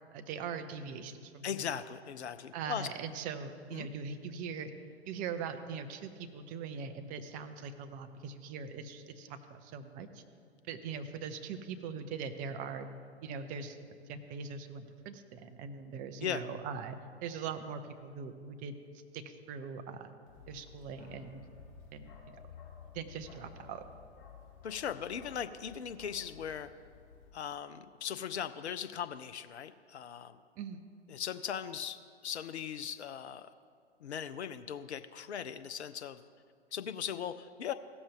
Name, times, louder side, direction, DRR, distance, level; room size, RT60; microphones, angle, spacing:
voice 1, 0.1-1.8 2.5-4.7 5.0-10.2 10.7-12.9 13.2-18.7 19.1-20.1 20.5-21.4 21.9-22.1 22.9-23.8 30.6-30.8, right 6 dB, 25° right, 7 dB, 0.6 m, -41 dB
voice 2, 1.4-2.9 3.7-3.9 16.2-16.4 24.6-26.7 27.3-30.4 31.1-33.5 34.0-36.2 36.7-37.7, left 8 dB, 75° left, 11 dB, 0.5 m, -39 dB
Bark, 20.3-27.3, left 6 dB, 50° left, 2.0 m, -54 dB
16.5 x 7.0 x 3.6 m, 2.2 s
figure-of-eight pair, 105°, 33 cm